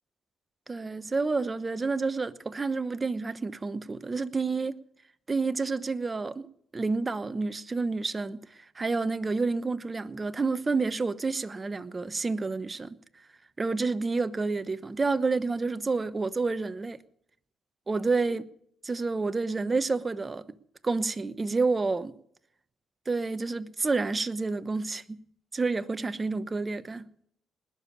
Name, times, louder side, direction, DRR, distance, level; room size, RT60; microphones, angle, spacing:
voice 1, 0.7-4.8 5.3-6.5 6.7-13.0 13.6-17.0 17.9-18.4 18.8-20.6 20.8-22.1 23.1-25.2 25.5-27.1, right 3 dB, 25° right, 1.0 m, -29 dB
20.0 x 7.2 x 9.7 m
cardioid pair, 90°, 0 cm